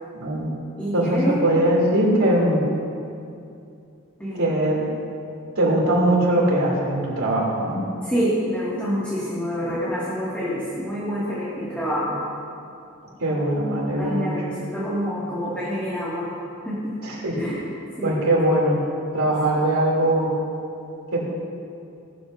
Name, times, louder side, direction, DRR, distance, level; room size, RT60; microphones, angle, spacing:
voice 1, 0.2-0.5 0.9-2.6 4.3-4.8 5.5-7.8 9.6-9.7 13.2-14.3 17.0-17.5 18.0-18.8 19.1-20.3 21.1-21.2, right 1 dB, 85° right, -4 dB, 3.2 m, -21 dB
voice 2, 0.8-1.5 4.2-4.5 8.0-12.2 13.8-16.3 16.6-17.0 17.3-17.7 18.0-18.4, equal, 5° left, -10 dB, 2.3 m, -27 dB
18.5 x 13.0 x 2.8 m, 2.5 s
head